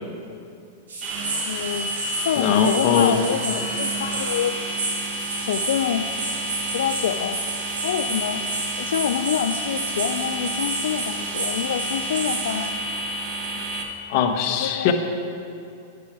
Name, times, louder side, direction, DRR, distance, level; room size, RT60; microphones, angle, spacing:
sound 1, 0.9-12.7, right 2 dB, 85° right, 2.4 m, -32 dB
sound 2, 1.0-13.8, right 1 dB, 40° right, 1.2 m, -30 dB
voice 1, 1.4-1.9 2.2-4.6 5.4-6.1 6.7-7.4 7.8-8.4 8.8-12.7 14.6-14.9, left 8 dB, 75° left, 7 dB, 0.3 m, -26 dB
voice 2, 2.4-3.1 14.1-14.9, left 8 dB, 50° left, 6 dB, 0.8 m, -20 dB
8.3 x 5.9 x 6.1 m, 2.6 s
hypercardioid pair, 120°, 0 cm